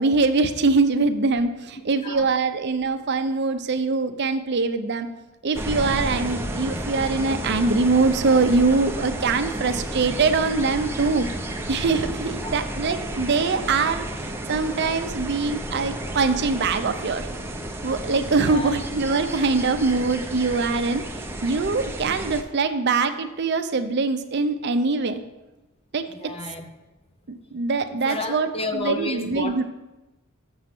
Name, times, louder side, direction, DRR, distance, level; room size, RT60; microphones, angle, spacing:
voice 1, 0.0-5.1 5.4-11.3 11.7-17.3 17.8-21.0 21.4-25.2 25.9-26.0 27.3-29.6, right 4 dB, 55° right, 8 dB, 0.6 m, -23 dB
sound 1, 5.5-22.4, right 1 dB, 10° right, 0.7 m, -32 dB
voice 2, 18.4-18.8 26.1-26.7 28.0-29.6, left 2 dB, 30° left, 5 dB, 0.8 m, -32 dB
6.9 x 6.5 x 5.9 m, 1.0 s
head